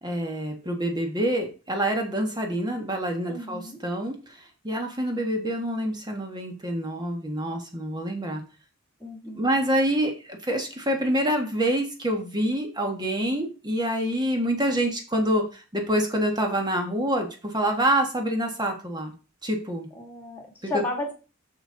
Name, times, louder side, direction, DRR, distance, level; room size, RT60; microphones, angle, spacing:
voice 1, 0.0-8.4 9.3-19.1 19.4-19.9 20.6-20.8, right 1 dB, 20° right, 3 dB, 1.4 m, -26 dB
voice 2, 3.3-3.8 9.0-9.5 19.9-21.1, left 2 dB, 10° left, 1 dB, 2.3 m, -33 dB
6.7 x 6.1 x 3.9 m, 0.33 s
head